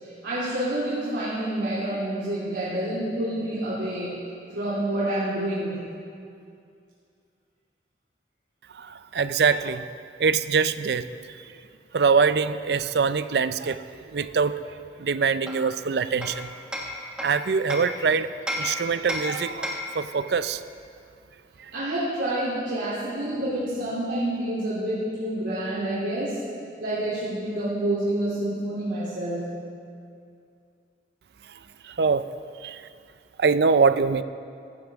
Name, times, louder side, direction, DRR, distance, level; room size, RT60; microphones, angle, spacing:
voice 1, 0.0-4.2 4.5-5.8 21.7-26.4 26.8-29.5, right 1 dB, 85° right, -10 dB, 2.9 m, -28 dB
voice 2, 8.8-9.9 10.2-11.1 11.9-13.8 14.1-14.5 15.0-16.5 17.2-18.3 18.6-20.6 31.9-32.3 32.6-32.8 33.4-34.2, right 5 dB, 60° right, 13 dB, 0.4 m, -23 dB
Hammer, 15.5-18.0 18.5-20.0, left 1 dB, 5° right, 1.4 m, -33 dB
15.0 x 14.0 x 3.5 m, 2.4 s
head